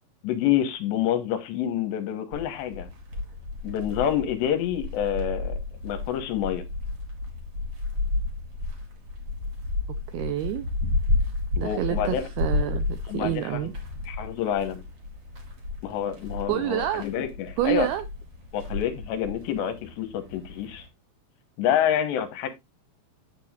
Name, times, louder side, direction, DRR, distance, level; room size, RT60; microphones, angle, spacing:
voice 1, 0.2-2.9 3.6-6.6 11.6-12.3 13.1-13.6 14.1-14.8 15.8-17.9 18.5-20.9 21.6-22.5, left 10 dB, 80° left, 3.2 m, -27 dB
sound 1, 2.3-20.9, left 3 dB, 40° right, 2.7 m, -32 dB
voice 2, 10.1-10.7 11.6-13.7 16.5-17.0 17.6-18.0, right 13 dB, 85° right, 2.2 m, -28 dB
9.8 x 7.7 x 2.5 m
omnidirectional pair, 5.2 m